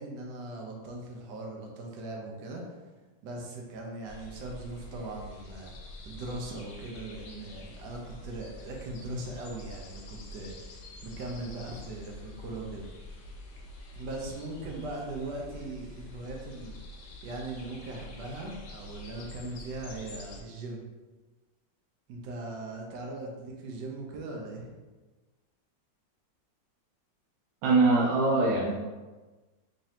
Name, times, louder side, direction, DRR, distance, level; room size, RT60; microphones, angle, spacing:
voice 1, 0.0-2.8 3.2-5.7 6.0-10.5 11.0-12.9 14.0-16.8 17.2-20.8 22.1-24.7, right 2 dB, 70° right, 0 dB, 1.3 m, -39 dB
sound 1, 4.0-20.4, left 1 dB, 70° left, 1.1 m, -46 dB
voice 2, 27.6-28.8, right 3 dB, 90° right, -3 dB, 1.3 m, -23 dB
4.0 x 3.1 x 2.8 m, 1.2 s
omnidirectional pair, 2.0 m